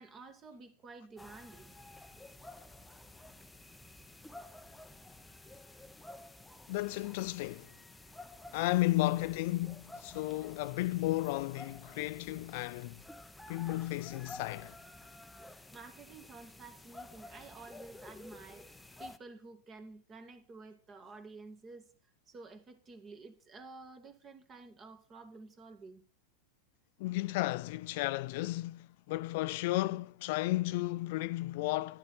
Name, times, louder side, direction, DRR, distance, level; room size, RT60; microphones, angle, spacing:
voice 1, 0.0-1.8 6.0-6.1 15.4-21.9 22.3-26.0, right 3 dB, 30° right, 2.1 m, -51 dB
sound 1, 1.2-19.2, left 2 dB, 5° left, 0.9 m, -52 dB
voice 2, 6.7-7.7 8.5-13.0 13.5-14.8 27.0-32.0, left 18 dB, 60° left, 0.4 m, -33 dB
11.5 x 10.5 x 4.3 m
hypercardioid pair, 110°, 0 cm